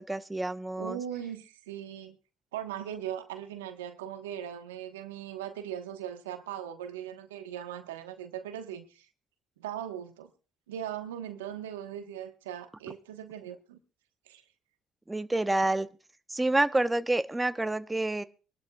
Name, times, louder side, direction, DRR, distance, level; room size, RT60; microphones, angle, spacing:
voice 1, 0.0-1.0 15.1-15.9 16.3-18.2, right 2 dB, 15° right, 11 dB, 0.9 m, -28 dB
voice 2, 0.8-2.2 2.5-9.1 9.6-10.3 10.7-13.8 14.3-14.4, right 10 dB, 85° right, 8 dB, 1.2 m, -39 dB
23.5 x 12.0 x 2.3 m, 0.34 s
hypercardioid pair, 55°, 0 cm